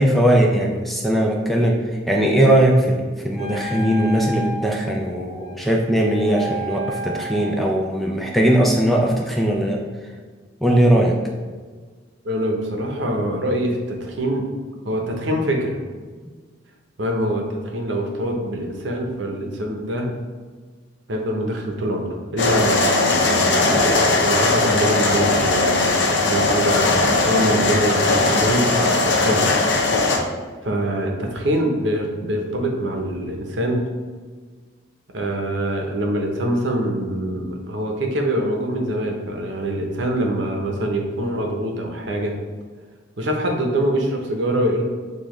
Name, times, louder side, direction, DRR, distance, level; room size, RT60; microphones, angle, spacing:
voice 1, 0.0-1.8 2.1-9.8 10.6-11.2, right 1 dB, ahead, 0 dB, 0.3 m, -19 dB
Wind instrument woodwind instrument, 3.3-7.9, equal, 30° left, 1.1 m, -33 dB
voice 2, 12.2-14.5 14.8-15.8 17.0-20.1 21.1-29.4 30.6-33.9 35.1-42.3 43.2-44.8, right 1 dB, 65° right, 1 dB, 0.7 m, -24 dB
sound 1, 22.4-30.2, left 3 dB, 65° left, 0.6 m, -19 dB
6.9 x 2.4 x 3.0 m, 1.5 s
head